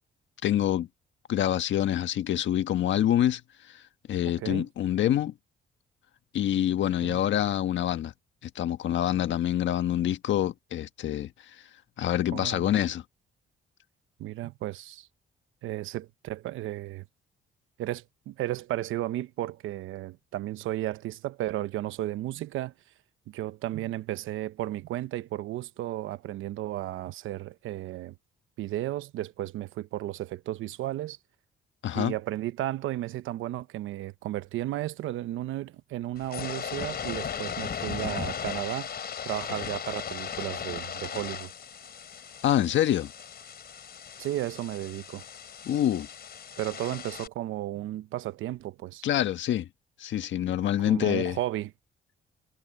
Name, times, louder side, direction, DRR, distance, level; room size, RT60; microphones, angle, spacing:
voice 1, 0.4-0.9 1.3-3.4 3.7-3.8 4.1-5.3 6.3-8.1 8.4-11.3 12.0-13.0 31.8-32.1 42.4-43.1 45.6-46.1 49.0-49.7 50.0-51.4, left 11 dB, 70° left, 1.5 m, -26 dB
voice 2, 4.2-4.7 7.0-7.2 12.3-12.7 14.2-15.1 15.6-17.1 17.8-22.7 23.3-28.2 28.6-31.2 31.9-38.9 39.2-41.5 44.2-45.2 46.6-49.0 50.9-51.7, right 14 dB, 85° right, 0.9 m, -34 dB
sound 1, 36.2-47.3, left 7 dB, 55° left, 4.0 m, -37 dB
cardioid pair, 90°, 20 cm